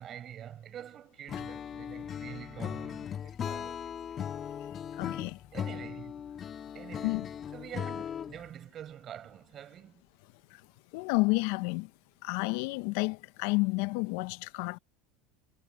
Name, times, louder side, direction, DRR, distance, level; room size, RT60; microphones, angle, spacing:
voice 1, 0.0-4.3 5.5-6.2 6.7-7.3 7.5-10.0, right 10 dB, 40° right, 5.5 m, -46 dB
Acoustic guitar / Strum, 1.3-8.5, left 8 dB, 35° left, 2.3 m, -38 dB
voice 2, 5.0-5.4 7.0-7.3 10.9-11.9 12.2-14.8, left 25 dB, 70° left, 0.8 m, -30 dB
supercardioid pair, 120°, 0 cm